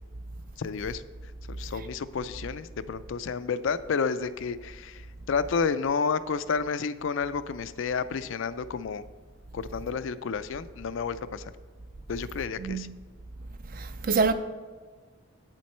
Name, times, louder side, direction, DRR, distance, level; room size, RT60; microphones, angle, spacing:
voice 1, 0.6-1.0 1.5-9.0 9.5-11.5 12.1-12.9, left 5 dB, 65° left, 0.4 m, -30 dB
voice 2, 13.7-14.3, right 4 dB, 40° right, 0.4 m, -25 dB
8.6 x 7.5 x 4.3 m
head